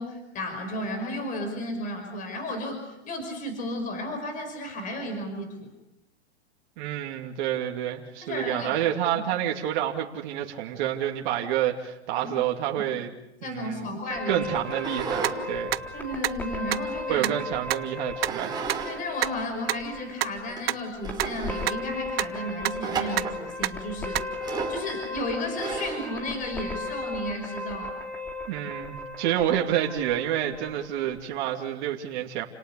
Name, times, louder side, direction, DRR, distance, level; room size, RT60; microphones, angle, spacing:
voice 1, 0.0-2.8 3.0-5.7 8.2-8.7 12.2-12.3 13.4-14.5 15.9-17.3 18.8-24.2 24.7-28.0 29.3-29.4, left 1 dB, 25° left, 5 dB, 5.6 m, -33 dB
voice 2, 6.8-13.1 13.4-13.9 14.3-15.7 17.1-18.7 28.5-32.4, right 11 dB, 45° right, 1 dB, 2.7 m, -28 dB
sound 1, 14.1-31.2, left 2 dB, 5° left, 2.4 m, -36 dB
sound 2, 14.7-15.4 15.8-17.2 18.2-19.0 19.3-19.4 20.0-20.1 20.6-20.7 21.0-21.7 22.8-23.4 24.4-24.8 25.6-26.1, right 6 dB, 10° right, 4.9 m, -33 dB
sound 3, 15.2-15.3 15.7-15.8 16.2-16.3 16.7-16.8 17.2-17.3 17.7-17.8 18.2-18.3 18.7-18.8 19.2-19.3 19.7-19.8 20.2-20.3 20.7-20.8 21.2-21.3 21.7-21.8 22.2-22.3 22.7-22.8 23.2-23.3 23.6-23.7 24.2-24.3, right 14 dB, 60° right, 1.1 m, -25 dB
29.5 x 18.5 x 8.3 m, 0.88 s
hypercardioid pair, 150°, 33 cm